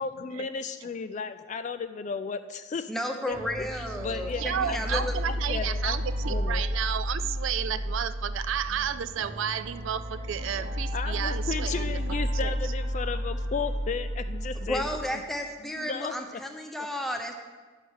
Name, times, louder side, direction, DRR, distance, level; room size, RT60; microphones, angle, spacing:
voice 1, 0.0-2.9 3.3-6.0 6.3-6.6 10.9-14.9 15.7-16.4, left 5 dB, 35° left, 11 dB, 0.3 m, -34 dB
voice 2, 2.9-5.2 14.7-17.4, equal, ahead, 3 dB, 0.8 m, -33 dB
sound 1, 3.3-15.0, equal, 30° right, 0.9 m, -32 dB
voice 3, 4.3-12.0 12.4-12.5, right 9 dB, 70° right, 13 dB, 0.4 m, -32 dB
10.0 x 5.7 x 6.3 m, 1.4 s
head